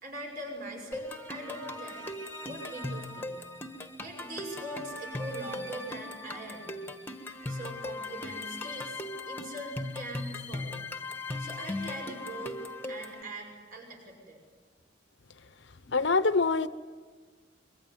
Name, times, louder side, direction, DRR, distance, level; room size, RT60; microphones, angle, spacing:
voice 1, 0.0-2.1 2.5-3.4 4.0-6.8 7.5-10.9 11.4-12.6 12.9-14.4, right 1 dB, 45° right, 2 dB, 5.9 m, -42 dB
sound 1, 0.9-13.2, left 2 dB, 10° left, 1.4 m, -38 dB
voice 2, 15.9-16.7, left 4 dB, 65° left, 13 dB, 0.9 m, -24 dB
25.5 x 22.5 x 9.4 m, 1.5 s
head